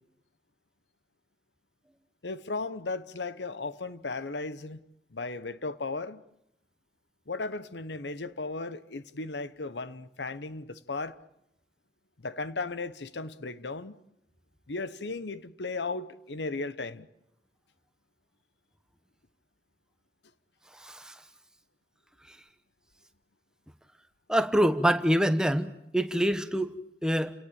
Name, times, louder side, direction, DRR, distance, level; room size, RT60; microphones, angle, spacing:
voice 1, 2.2-4.8 5.1-6.2 7.3-11.2 12.2-14.0 14.7-17.1, left 3 dB, 85° left, 1.0 m, -36 dB
voice 2, 20.8-21.2 24.3-27.3, equal, 5° right, 1.0 m, -26 dB
29.0 x 18.0 x 8.8 m
head